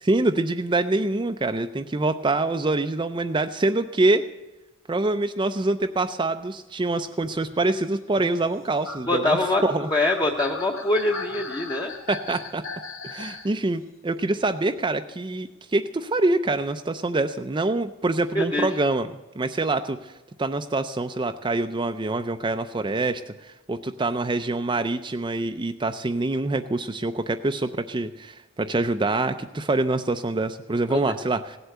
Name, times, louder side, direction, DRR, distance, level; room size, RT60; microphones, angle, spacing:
voice 1, 0.0-4.2 4.9-9.9 12.1-12.6 13.0-20.1 20.4-31.6, right 2 dB, 20° right, 8 dB, 0.4 m, -25 dB
sound 1, 7.1-13.5 14.8-14.9, left 4 dB, 75° left, 2.1 m, -38 dB
voice 2, 9.1-9.6 9.9-11.9 18.3-18.7 30.9-31.0, left 2 dB, 20° left, 1 dB, 0.9 m, -23 dB
17.0 x 8.1 x 7.8 m, 1.1 s
head